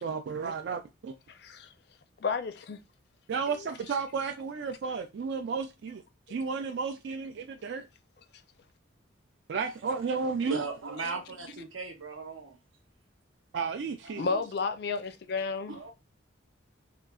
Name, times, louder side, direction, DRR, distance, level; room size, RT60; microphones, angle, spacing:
voice 1, 0.0-1.1 3.3-6.0 6.3-7.9 9.5-10.6 13.5-14.3, right 5 dB, 60° right, 0.3 m, -33 dB
voice 2, 1.3-1.7 2.2-2.8 3.5-3.6 14.2-15.8, left 4 dB, 55° left, 0.4 m, -32 dB
voice 3, 10.4-12.6 14.0-14.4 15.7-15.9, right 4 dB, 90° right, 1.0 m, -38 dB
3.7 x 2.3 x 2.3 m
head